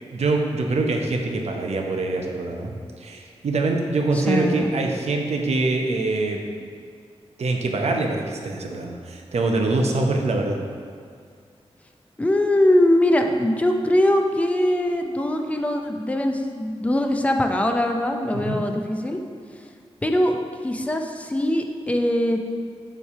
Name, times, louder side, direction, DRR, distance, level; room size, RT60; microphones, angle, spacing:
voice 1, 0.1-6.5 7.4-10.6 18.3-18.6, right 3 dB, 75° right, 2 dB, 0.8 m, -24 dB
voice 2, 4.1-4.7 12.2-19.2 20.0-20.4 20.6-22.4, left 1 dB, 10° left, 4 dB, 0.5 m, -21 dB
7.2 x 3.3 x 5.5 m, 2.3 s
wide cardioid pair, 125°, 11 cm